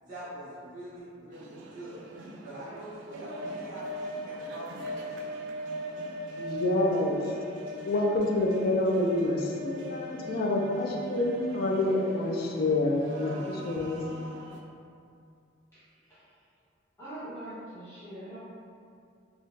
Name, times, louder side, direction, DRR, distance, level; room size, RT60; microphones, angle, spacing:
voice 1, 0.0-5.3, right 1 dB, 45° right, -11 dB, 1.1 m, -44 dB
sound 1, 1.3-14.6, equal, 65° right, 0.4 m, -40 dB
voice 2, 6.4-7.2 7.9-14.0, left 2 dB, 50° left, 0 dB, 0.4 m, -27 dB
voice 3, 17.0-18.4, right 1 dB, 15° left, -15 dB, 1.1 m, -42 dB
3.6 x 2.2 x 2.5 m, 2.4 s
head